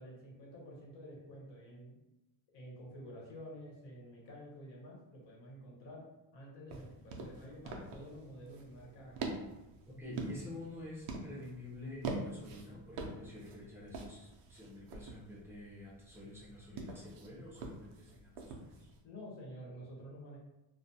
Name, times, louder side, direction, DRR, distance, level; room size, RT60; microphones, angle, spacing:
voice 1, 0.0-1.9 2.5-6.0 6.3-9.3 19.0-20.4, equal, 60° left, -3 dB, 0.9 m, -50 dB
sound 1, 6.7-19.0, right 3 dB, 85° right, 0.6 m, -45 dB
voice 2, 10.0-18.9, left 1 dB, 5° right, -8 dB, 0.5 m, -49 dB
2.3 x 2.2 x 2.7 m, 0.97 s
cardioid pair, 170°, 49 cm